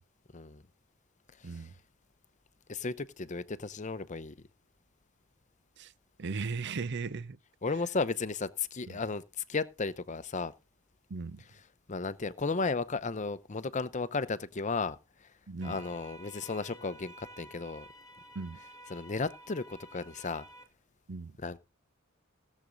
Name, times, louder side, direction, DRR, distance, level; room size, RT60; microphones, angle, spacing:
voice 1, 1.4-1.7 5.8-5.9 6.2-7.4 8.9-9.0 11.1-11.4 15.5-15.8 18.3-18.6 21.1-21.4, right 4 dB, 55° right, 0.6 m, -37 dB
voice 2, 2.7-4.3 7.6-10.5 11.9-15.3 15.6-17.9 18.9-20.5 21.4-21.6, left 4 dB, 35° left, 0.7 m, -34 dB
sound 1, 15.6-20.6, right 1 dB, 15° left, 2.0 m, -52 dB
17.0 x 7.5 x 3.9 m
head